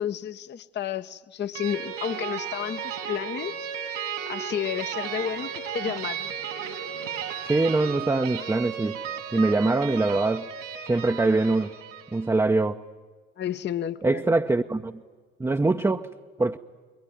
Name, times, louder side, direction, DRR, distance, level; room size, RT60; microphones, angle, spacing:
voice 1, 0.0-3.6 4.3-6.3 13.4-14.3, left 9 dB, 30° left, 0.8 m, -31 dB
sound 1, 1.5-12.3, right 8 dB, 75° right, 3.7 m, -34 dB
voice 2, 7.5-9.0 9.3-10.5 10.9-11.7 12.1-12.8 14.0-15.0 15.4-16.1 16.4-16.6, right 3 dB, 10° right, 0.7 m, -23 dB
29.0 x 22.0 x 9.3 m
figure-of-eight pair, 55°, 37 cm